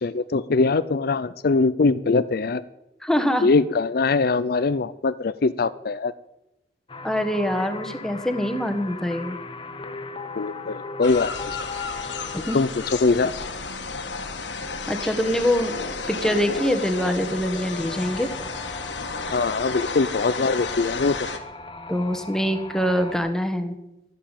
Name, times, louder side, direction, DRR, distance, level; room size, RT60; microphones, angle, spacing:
voice 1, 0.0-2.6 3.4-6.1 10.4-11.6 12.5-12.7 13.0-13.3 19.3-21.2, left 3 dB, 55° left, 15 dB, 0.5 m, -22 dB
voice 2, 3.0-3.5 7.0-9.4 12.3-12.6 14.9-15.7 16.1-18.3 21.9-23.7, equal, 5° left, 7 dB, 1.5 m, -24 dB
sound 1, 6.9-13.1 17.4-23.2, left 3 dB, 30° left, 1.0 m, -38 dB
sound 2, 11.0-21.4, left 4 dB, 80° left, 1.8 m, -32 dB
12.5 x 11.5 x 9.1 m, 0.91 s
head